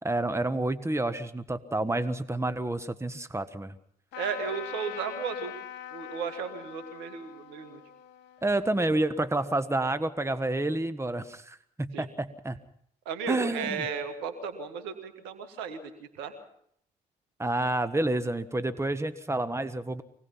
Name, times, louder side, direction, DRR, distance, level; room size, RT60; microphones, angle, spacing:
voice 1, 0.0-3.7 8.4-12.6 13.3-13.9 17.4-20.0, right 2 dB, 15° right, 13 dB, 1.6 m, -29 dB
Trumpet, 4.1-9.6, left 10 dB, 80° left, 1.4 m, -43 dB
voice 2, 4.2-5.5 5.9-7.8 11.9-12.1 13.1-15.9 16.2-16.3, right 6 dB, 90° right, 10 dB, 2.1 m, -35 dB
25.0 x 18.5 x 5.8 m, 0.69 s
hypercardioid pair, 45°, 18 cm